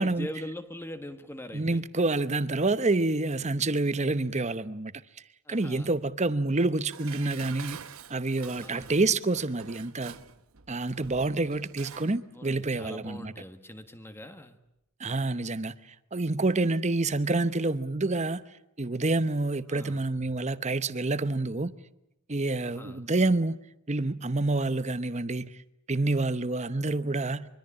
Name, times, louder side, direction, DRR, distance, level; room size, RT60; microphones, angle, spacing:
voice 1, 0.0-1.8 5.4-5.9 8.6-8.9 12.3-14.6 19.7-20.0 22.6-23.0, left 1 dB, 10° left, 1.4 m, -42 dB
voice 2, 1.5-4.9 5.5-7.8 8.1-10.1 10.7-13.3 15.0-15.7 16.1-18.4 18.8-21.7 22.3-23.6 23.9-25.5 25.9-27.5, right 2 dB, 30° right, 0.9 m, -27 dB
Dishes pots and pans, 6.9-12.2 12.5-12.6, right 7 dB, 70° right, 1.0 m, -46 dB
25.0 x 24.0 x 8.8 m
head